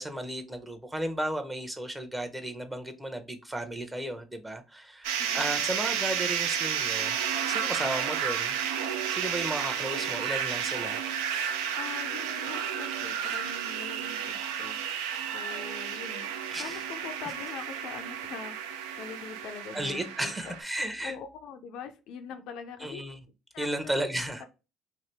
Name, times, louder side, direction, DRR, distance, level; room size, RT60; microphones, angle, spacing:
voice 1, 0.0-5.1 5.3-7.2 7.5-8.6 9.1-11.0 16.5-16.8 19.7-21.1 22.8-23.2 23.6-24.4, right 1 dB, 15° right, 0.8 m, -34 dB
sound 1, 5.0-20.6, right 8 dB, 75° right, 0.3 m, -32 dB
voice 2, 5.2-5.6 11.8-14.8 15.3-20.5 21.0-23.0 23.5-24.1 24.4-24.5, left 6 dB, 65° left, 0.4 m, -43 dB
2.8 x 2.5 x 3.3 m
hypercardioid pair, 55°, 0 cm